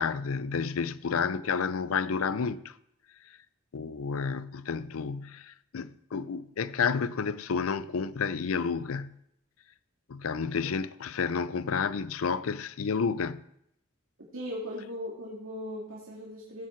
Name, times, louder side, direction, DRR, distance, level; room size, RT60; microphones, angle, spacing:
voice 1, 0.0-2.7 3.7-9.2 10.1-13.4, left 5 dB, 85° left, 0.5 m, -30 dB
voice 2, 14.3-16.7, left 1 dB, 75° right, 2.2 m, -38 dB
16.5 x 7.4 x 4.4 m
head